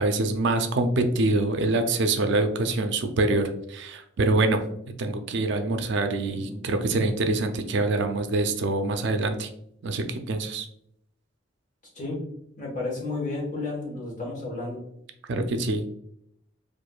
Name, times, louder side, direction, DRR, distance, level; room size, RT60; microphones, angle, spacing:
voice 1, 0.0-4.6 5.0-9.5 9.8-10.7 15.3-15.8, right 2 dB, 65° right, 7 dB, 0.4 m, -25 dB
voice 2, 6.3-6.7 11.9-12.2 12.6-14.8, left 2 dB, 40° left, -2 dB, 1.2 m, -32 dB
4.4 x 2.5 x 2.3 m, 0.73 s
head